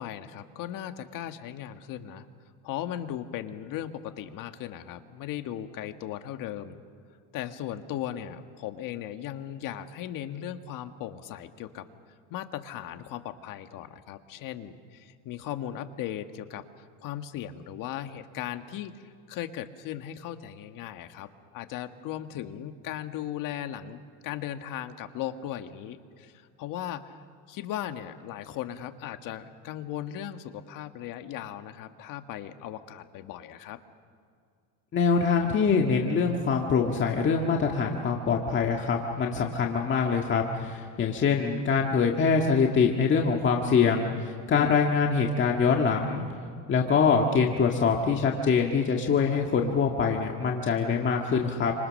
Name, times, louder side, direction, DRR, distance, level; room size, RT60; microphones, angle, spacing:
voice 1, 0.0-2.2 2.6-6.8 7.3-11.8 12.3-27.2 27.5-33.8 44.5-44.8, left 11 dB, 55° left, 8 dB, 1.6 m, -37 dB
voice 2, 34.9-46.2 46.7-51.7, left 5 dB, 30° left, 1 dB, 1.8 m, -24 dB
29.0 x 26.5 x 6.5 m, 2.2 s
cardioid pair, 135°, 40 cm